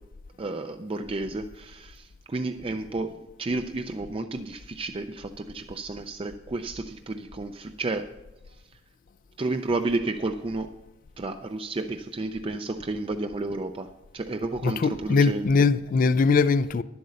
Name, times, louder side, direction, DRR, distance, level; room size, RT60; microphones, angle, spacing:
voice 1, 0.4-8.1 8.7-8.8 9.4-10.7 11.2-13.9 14.1-15.5, right 2 dB, 30° right, 0.4 m, -31 dB
voice 2, 14.6-16.8, left 4 dB, 45° left, 0.3 m, -21 dB
11.0 x 7.9 x 6.5 m
head